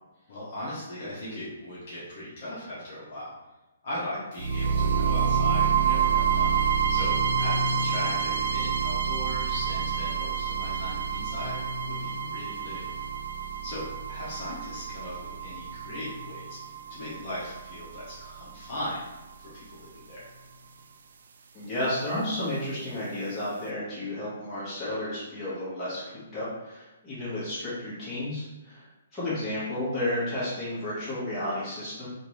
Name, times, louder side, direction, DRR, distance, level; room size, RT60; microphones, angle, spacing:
voice 1, 0.3-3.3 3.8-6.5 6.9-11.6 11.9-12.9 13.6-16.6 16.9-19.1 19.4-20.3, left 1 dB, 40° left, -8 dB, 0.9 m, -38 dB
sound 1, 4.4-18.4, right 6 dB, 60° right, 0.3 m, -28 dB
voice 2, 21.5-32.1, left 1 dB, 5° left, -13 dB, 1.4 m, -32 dB
3.8 x 2.6 x 3.1 m, 1.0 s
hypercardioid pair, 170°, 0 cm